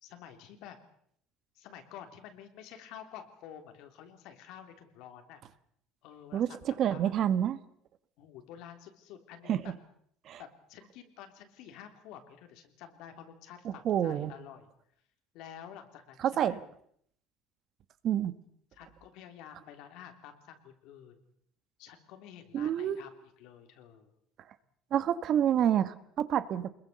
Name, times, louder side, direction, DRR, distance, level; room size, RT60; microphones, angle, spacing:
voice 1, 0.0-0.8 1.5-5.4 6.0-7.1 8.2-9.7 10.4-14.7 15.3-16.6 18.7-21.2 21.8-24.1, left 9 dB, 70° left, 6 dB, 3.4 m, -50 dB
voice 2, 6.8-7.6 9.5-9.6 10.3-10.4 13.6-14.3 16.2-16.6 18.0-18.3 22.5-23.0 24.9-26.7, right 10 dB, 45° right, 14 dB, 1.2 m, -28 dB
25.5 x 21.5 x 6.8 m, 0.67 s
cardioid pair, 150°, 0 cm